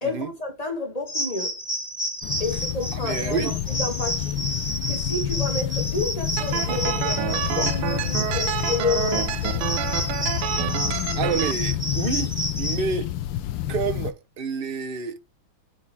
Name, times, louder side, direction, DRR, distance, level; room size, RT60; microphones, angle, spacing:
voice 1, 0.0-1.6 2.4-4.4 4.9-9.8, left 3 dB, 20° left, 2.2 m, -30 dB
sound 1, 1.1-12.8, equal, 5° right, 4.9 m, -30 dB
sound 2, 2.2-14.1, left 12 dB, 70° left, 1.4 m, -29 dB
voice 2, 3.0-3.5 11.2-13.1 13.7-15.2, right 6 dB, 45° right, 0.7 m, -28 dB
sound 3, 6.4-11.5, right 15 dB, 85° right, 1.5 m, -29 dB
9.8 x 5.0 x 3.6 m
omnidirectional pair, 2.3 m